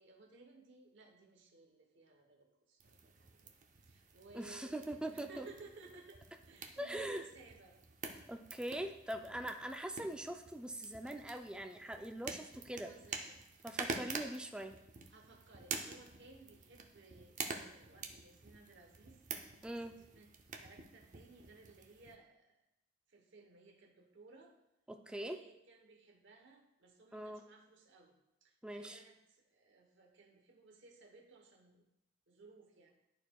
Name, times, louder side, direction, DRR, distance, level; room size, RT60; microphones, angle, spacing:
voice 1, 0.0-3.5 3.9-7.8 12.5-13.4 15.1-19.2 19.7-20.3 20.6-22.6 23.1-24.5 25.0-31.9 32.3-32.9, right 3 dB, 65° right, 2 dB, 1.0 m, -59 dB
sound 1, 2.8-22.1, right 4 dB, 40° right, 0.7 m, -48 dB
voice 2, 4.3-5.5 6.8-7.3 8.3-12.9 13.6-14.7 19.6-19.9 24.9-25.4 27.1-27.4 28.6-29.0, right 1 dB, 5° right, 5 dB, 0.3 m, -42 dB
12.5 x 4.4 x 2.3 m, 0.87 s
head